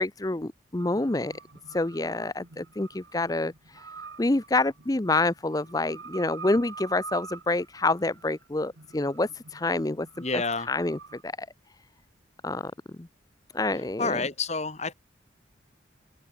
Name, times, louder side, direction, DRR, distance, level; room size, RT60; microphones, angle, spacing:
voice 1, 0.0-1.3 1.7-3.8 4.2-10.1 10.7-11.3 12.4-12.7 13.0-13.1 13.5-14.2, left 2 dB, 20° left, 0.6 m, -27 dB
sound 1, 0.8-11.2, right 5 dB, 80° right, 1.8 m, -46 dB
voice 2, 10.2-10.7 14.0-14.9, left 4 dB, 35° left, 3.0 m, -29 dB
open air
head